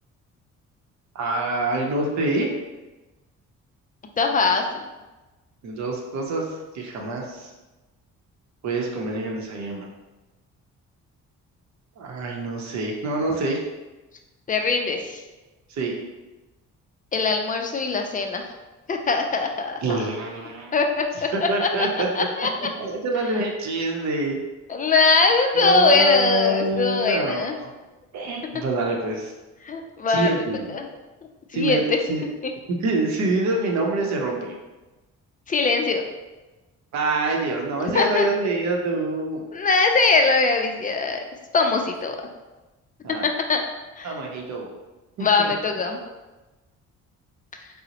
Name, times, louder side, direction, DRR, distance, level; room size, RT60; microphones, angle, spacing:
voice 1, 1.1-2.5 5.6-7.5 8.6-9.9 12.0-13.6 15.7-15.9 19.8-20.7 21.5-22.1 22.8-24.4 25.5-27.7 28.1-29.3 30.1-30.7 31.5-32.2 32.8-34.5 36.9-39.4 43.0-43.3 44.0-44.7 45.2-45.5, right 2 dB, 65° right, 0 dB, 0.7 m, -26 dB
voice 2, 4.2-4.8 14.5-15.2 17.1-18.4 18.9-19.8 20.7-21.9 22.1-22.7 24.7-27.5 29.6-30.3 30.7-30.9 31.5-32.0 35.5-36.0 37.9-38.3 39.5-41.2 41.5-42.2 43.2-43.6 44.0-44.1 45.2-46.0, left 4 dB, 30° left, 4 dB, 0.4 m, -21 dB
3.7 x 2.0 x 2.9 m, 1.1 s
cardioid pair, 90°, 30 cm